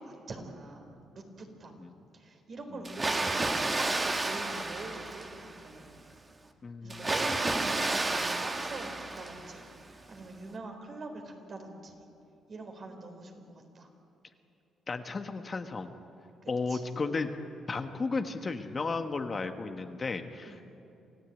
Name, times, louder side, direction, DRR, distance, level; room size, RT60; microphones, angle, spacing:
voice 1, 0.0-1.7 2.1-5.9 6.8-12.0 12.5-13.9 16.4-16.9 20.4-20.7, right 2 dB, 50° right, 4 dB, 4.0 m, -44 dB
voice 2, 2.7-3.1 6.6-7.1 14.9-15.9 16.5-17.4 17.7-20.7, left 4 dB, 35° left, 7 dB, 1.3 m, -34 dB
Water, 2.8-5.7 6.9-9.7, right 2 dB, 25° right, 2.0 m, -31 dB
27.0 x 15.5 x 9.2 m, 2.7 s
cardioid pair, 90°, 0 cm